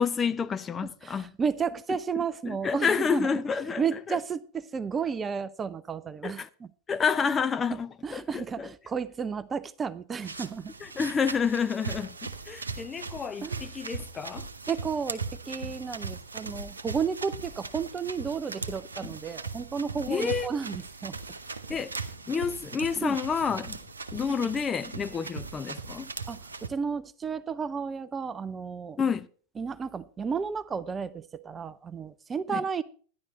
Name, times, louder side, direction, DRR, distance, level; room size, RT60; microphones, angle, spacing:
voice 1, 0.0-1.3 2.1-4.2 6.2-6.5 6.9-8.7 10.8-14.5 20.1-20.5 21.7-22.0 22.3-23.8 24.1-26.1 29.0-29.3 32.5-32.6, left 6 dB, 20° left, 0.7 m, -29 dB
voice 2, 1.0-3.4 3.8-6.4 7.7-10.7 13.4-13.7 14.7-21.2 23.0-23.2 24.4-24.5 26.3-29.0 29.6-32.8, right 6 dB, 20° right, 0.5 m, -32 dB
sound 1, 10.2-26.7, right 4 dB, 75° right, 1.0 m, -39 dB
12.5 x 10.5 x 4.1 m
figure-of-eight pair, 90°, 0 cm